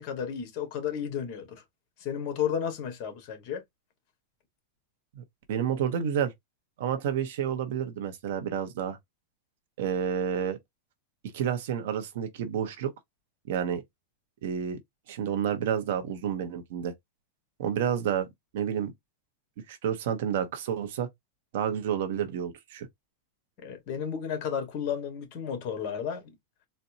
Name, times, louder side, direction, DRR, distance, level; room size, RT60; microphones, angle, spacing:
voice 1, 0.0-1.6 2.0-3.6 23.6-26.2, left 8 dB, 45° left, 1.5 m, -33 dB
voice 2, 5.5-6.3 6.8-9.0 9.8-10.6 11.3-12.9 13.5-13.8 14.4-14.8 15.1-16.9 17.6-18.3 18.5-18.9 19.7-21.1 21.5-22.9, right 8 dB, 70° right, 0.9 m, -29 dB
4.2 x 2.2 x 2.7 m
supercardioid pair, 140°, 0 cm